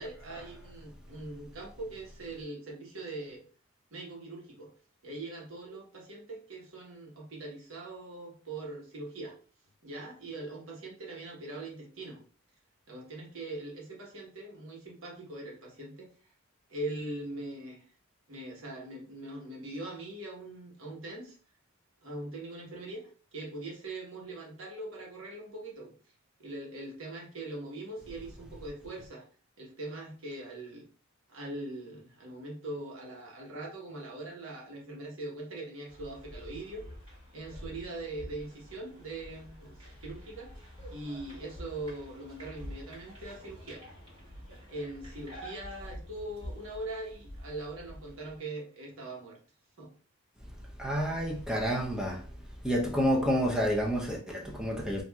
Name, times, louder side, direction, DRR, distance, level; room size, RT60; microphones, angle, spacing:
voice 1, 0.0-3.4 3.9-4.7 5.0-9.4 9.8-12.2 12.9-16.1 16.7-17.9 18.3-21.4 22.0-23.0 23.3-25.9 26.4-29.2 29.6-30.8 31.3-36.8 37.3-40.5 40.9-43.8 44.7-49.4 49.8-49.9, right 2 dB, 70° right, 1.1 m, -41 dB
sound 1, 35.9-48.4, equal, 25° right, 1.5 m, -47 dB
voice 2, 50.8-52.3 52.6-55.0, equal, 5° right, 0.7 m, -29 dB
4.5 x 2.5 x 2.3 m
head